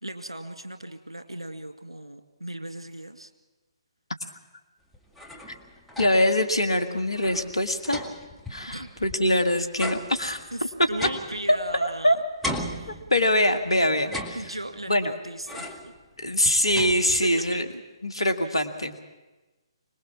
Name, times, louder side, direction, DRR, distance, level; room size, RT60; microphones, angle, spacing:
voice 1, 0.0-3.3 8.7-8.9 10.5-12.2 12.7-13.0 14.3-15.9 17.2-17.6, right 1 dB, 80° right, 8 dB, 2.1 m, -37 dB
sound 1, 4.9-6.4 6.7-6.8 7.1-9.3 9.8-12.0 12.4-13.5 14.0-14.9 15.5-16.0 16.3-17.5, left 1 dB, ahead, 1.6 m, -37 dB
voice 2, 6.0-8.0 8.5-10.4 11.5-12.2 12.9-14.4 14.9-15.1 16.2-17.7 18.0-19.0, left 1 dB, 75° left, 8 dB, 2.2 m, -23 dB
25.5 x 19.5 x 7.4 m, 1.2 s
figure-of-eight pair, 135°, 3 cm